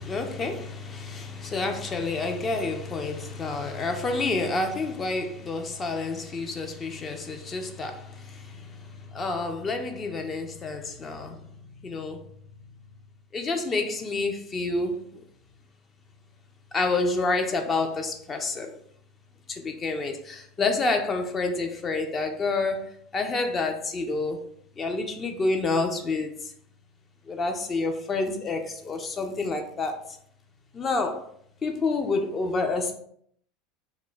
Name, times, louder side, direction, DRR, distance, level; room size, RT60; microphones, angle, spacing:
voice 1, 0.0-11.6 11.8-12.2 13.3-15.2 16.7-18.8 19.5-24.4 24.8-26.5 27.3-30.2 30.7-31.3 31.6-32.9, left 3 dB, 25° left, 4 dB, 0.3 m, -29 dB
2.1 x 2.1 x 3.7 m, 0.66 s
figure-of-eight pair, 75°, 0 cm